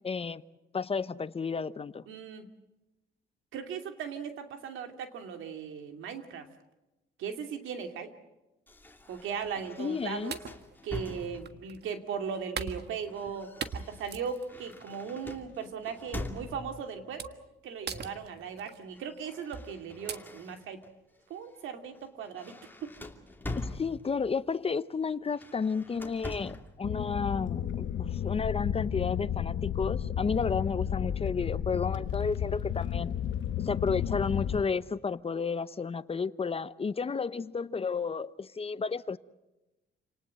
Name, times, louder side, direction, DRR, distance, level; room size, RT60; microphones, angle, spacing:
voice 1, 0.0-0.4 0.7-2.0 9.8-10.4 23.6-33.2 33.6-39.2, left 5 dB, 30° left, 0.8 m, -32 dB
voice 2, 2.1-2.5 3.5-6.5 7.2-8.1 9.1-10.4 10.8-17.3 17.6-20.8 21.3-22.9, right 6 dB, 85° right, 2.7 m, -38 dB
sound 1, 8.7-11.8 12.7-16.9 17.9-18.3 18.6-20.9 21.4-21.6 21.9-24.3 25.2-26.8, left 2 dB, 10° left, 2.8 m, -44 dB
sound 2, 9.4-9.7 10.3-11.9 12.6-13.3 13.6-14.8 15.3-15.6 16.4-16.5 17.2-17.5 17.9-18.8 19.5-19.7 20.1-20.2, right 6 dB, 55° right, 1.6 m, -40 dB
sound 3, 26.8-34.6, left 9 dB, 65° left, 1.2 m, -32 dB
28.5 x 19.0 x 7.7 m
cardioid pair, 90°, 20 cm